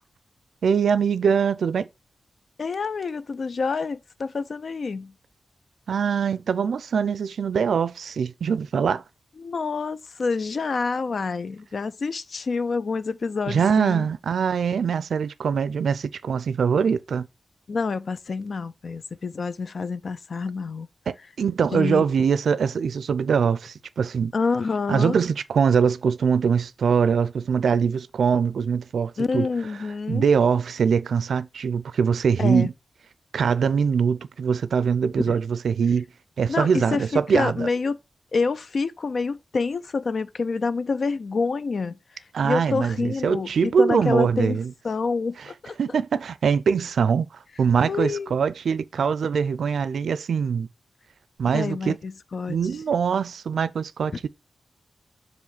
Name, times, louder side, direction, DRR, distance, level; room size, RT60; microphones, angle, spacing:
voice 1, 0.6-1.9 5.9-9.0 13.5-17.3 21.1-24.3 24.9-29.5 30.1-32.7 33.3-36.0 36.4-37.7 42.3-44.7 45.4-45.5 45.8-47.3 47.6-50.7 51.4-52.0 52.5-54.3, right 6 dB, 90° right, 0.5 m, -23 dB
voice 2, 2.6-5.1 9.4-14.1 17.7-20.9 21.7-22.0 24.3-25.2 29.2-30.3 32.4-32.7 35.3-35.4 36.5-37.0 37.3-38.0 38.3-42.0 42.4-44.6 44.8-46.0 47.9-48.4 51.5-52.6, left 4 dB, 50° left, 0.5 m, -27 dB
7.3 x 3.1 x 5.8 m
wide cardioid pair, 175°, 0 cm